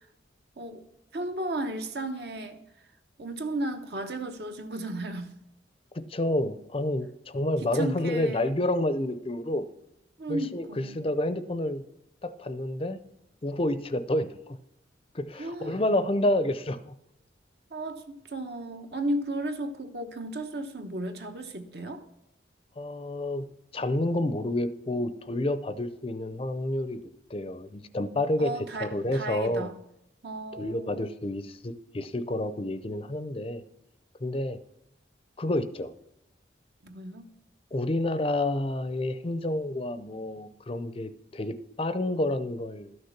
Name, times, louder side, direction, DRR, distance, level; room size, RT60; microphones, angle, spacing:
voice 1, 1.1-2.6 3.2-5.3 7.6-8.6 10.2-11.0 15.4-15.8 17.7-22.0 28.4-29.7 30.2-31.0 36.8-37.3, right 1 dB, 60° right, 1.1 m, -34 dB
voice 2, 5.9-9.6 10.3-11.8 12.2-13.0 13.4-14.6 15.1-16.9 22.8-23.5 23.7-27.0 27.3-29.7 30.5-33.6 34.2-34.6 35.4-35.9 37.7-43.0, left 1 dB, 30° left, 0.5 m, -29 dB
12.5 x 6.5 x 5.8 m
head